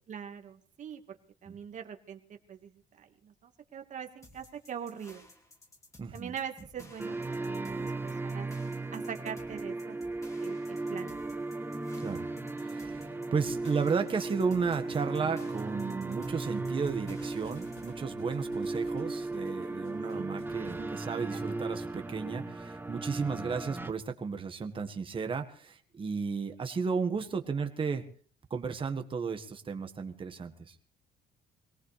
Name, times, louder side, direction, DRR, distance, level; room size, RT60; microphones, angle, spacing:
voice 1, 0.1-5.2 6.1-8.5 8.9-10.0 10.4-11.2 20.1-20.3 20.6-20.9 21.3-21.5, right 8 dB, 45° right, 4 dB, 1.9 m, -43 dB
sound 1, 4.2-17.9, left 1 dB, 15° left, 2.5 m, -56 dB
voice 2, 6.0-6.3 12.0-12.3 12.6-28.0 28.5-30.7, right 5 dB, 30° right, 6 dB, 1.7 m, -34 dB
sound 2, 7.0-23.9, right 3 dB, 10° right, 1.0 m, -36 dB
Thump thud, 15.4-21.0, left 5 dB, 80° left, 7.3 m, -58 dB
23.0 x 18.0 x 3.4 m, 0.43 s
cardioid pair, 110°, 17 cm